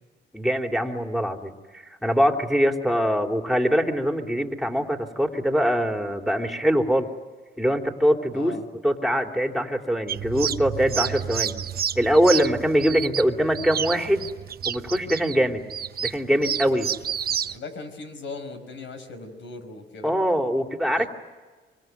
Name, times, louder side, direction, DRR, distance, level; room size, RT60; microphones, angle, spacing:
voice 1, 0.3-1.5 2.0-7.1 7.6-8.5 8.8-11.5 11.9-14.3 14.6-15.6 16.0-16.9 20.0-21.1, equal, ahead, 3 dB, 3.2 m, -23 dB
voice 2, 8.3-8.6 16.3-16.8 17.5-20.1 21.0-21.1, left 3 dB, 70° left, 7 dB, 5.3 m, -39 dB
sound 1, 10.1-17.6, right 8 dB, 50° right, 1.0 m, -30 dB
26.0 x 25.0 x 9.3 m, 1.4 s
cardioid pair, 90°, 20 cm